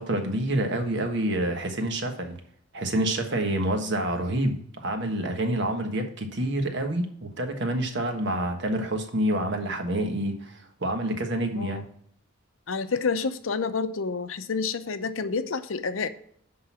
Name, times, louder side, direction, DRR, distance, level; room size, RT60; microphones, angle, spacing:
voice 1, 0.0-2.4 2.7-11.8, right 1 dB, 60° right, 5 dB, 1.3 m, -27 dB
voice 2, 11.5-11.8 12.7-16.1, left 4 dB, 80° left, 11 dB, 0.6 m, -29 dB
10.5 x 3.9 x 5.9 m, 0.64 s
head